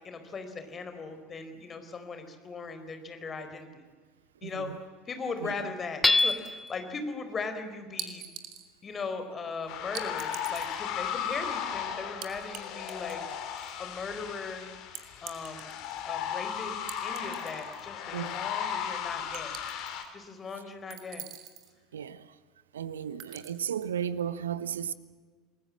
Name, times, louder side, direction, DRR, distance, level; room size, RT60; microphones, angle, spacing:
voice 1, 0.0-3.8 4.4-4.7 5.1-8.3 8.8-13.2 13.8-14.7 15.2-15.8 16.0-19.6 20.1-21.2, left 4 dB, 30° left, 4.4 m, -38 dB
voice 2, 4.4-4.8 5.4-5.7 18.1-18.4 21.9-22.3 22.7-24.9, right 9 dB, 75° right, 1.1 m, -34 dB
Hammer / Chink clink, 6.0-6.8, left 2 dB, 15° left, 1.4 m, -24 dB
sound 1, 6.2-6.7 8.0-8.7 9.9-10.8 12.2-12.6 12.9-13.7 14.9-16.0 16.9-17.9 18.2-18.3 19.3-20.1 20.9-21.7 23.2-23.5, right 10 dB, 50° right, 3.0 m, -43 dB
sound 2, 9.7-20.0, left 8 dB, 50° left, 3.3 m, -36 dB
29.0 x 20.5 x 7.6 m
figure-of-eight pair, 70°, 0 cm